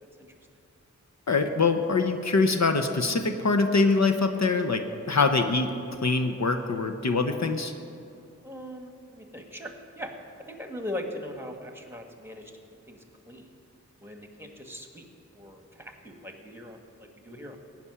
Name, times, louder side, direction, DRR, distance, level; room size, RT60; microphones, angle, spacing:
voice 1, 1.3-5.7 6.0-7.7, left 3 dB, 60° left, 6 dB, 0.9 m, -24 dB
voice 2, 8.4-10.1 10.5-12.5 12.9-13.5 14.0-15.1 15.3-17.6, left 1 dB, 10° right, 4 dB, 1.8 m, -40 dB
15.5 x 6.1 x 9.8 m, 2.5 s
cardioid pair, 55°, 31 cm